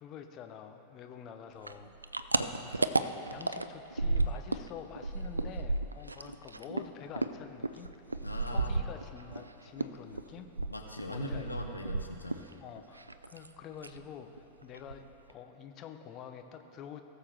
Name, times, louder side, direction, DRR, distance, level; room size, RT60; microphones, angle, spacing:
voice 1, 0.0-1.9 2.4-7.9 8.4-10.5 11.1-11.7 12.6-17.0, left 8 dB, 35° left, 6 dB, 0.8 m, -47 dB
sound 1, 1.6-4.7 4.9-9.4 9.8-12.5 12.8-13.5 13.8-14.0 14.4-14.5 14.7-15.3, right 3 dB, 80° right, 0.3 m, -33 dB
voice 2, 8.2-8.7 10.7-12.4, left 1 dB, 85° left, 2 dB, 0.9 m, -40 dB
19.0 x 6.8 x 3.5 m, 2.9 s
figure-of-eight pair, 90°, 0 cm